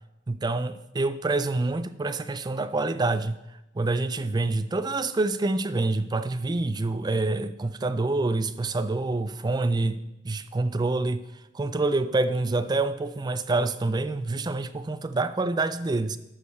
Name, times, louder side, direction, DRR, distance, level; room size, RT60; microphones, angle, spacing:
voice 1, 0.3-3.4 3.8-10.0 10.2-11.2 11.5-16.2, right 2 dB, 20° right, 0.4 m, -27 dB
12.5 x 6.5 x 4.3 m
head